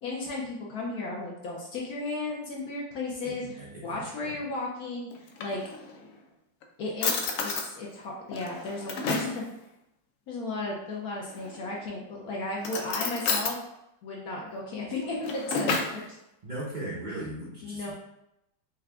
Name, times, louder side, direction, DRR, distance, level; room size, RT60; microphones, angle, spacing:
voice 1, 0.0-5.6 6.8-9.4 10.3-13.6 14.0-16.0 17.6-17.9, left 2 dB, 65° left, -2 dB, 1.0 m, -35 dB
voice 2, 3.2-4.4 16.4-17.9, right 1 dB, 80° right, -7 dB, 0.4 m, -38 dB
Drawer open or close, 5.1-6.1 6.6-6.7 7.0-7.7 8.3-9.4 11.3-11.8 12.6-13.6 15.0-16.0, left 4 dB, 90° left, 0.7 m, -31 dB
4.8 x 2.2 x 3.4 m, 0.83 s
omnidirectional pair, 2.1 m